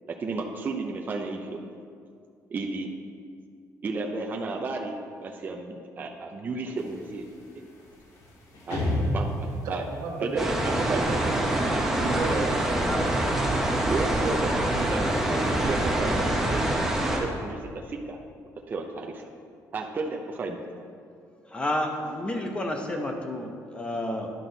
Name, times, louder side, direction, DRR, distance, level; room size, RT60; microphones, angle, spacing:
voice 1, 0.1-1.6 2.5-2.9 3.8-4.9 5.2-7.2 8.7-8.8 9.1-9.8 10.2-11.1 13.8-16.4 16.8-18.2 18.7-19.3 19.7-20.6, right 3 dB, 30° right, 2 dB, 0.6 m, -33 dB
sound 1, 6.7-16.0, left 1 dB, 70° left, 1.8 m, -36 dB
voice 2, 9.6-10.5 10.8-12.7, right 4 dB, 90° right, 1 dB, 1.2 m, -33 dB
sound 2, 10.4-17.2, right 1 dB, 5° right, 1.0 m, -25 dB
voice 3, 21.4-24.3, left 1 dB, 15° left, 3 dB, 0.8 m, -30 dB
10.5 x 6.0 x 4.0 m, 2.3 s
cardioid pair, 145°, 6 cm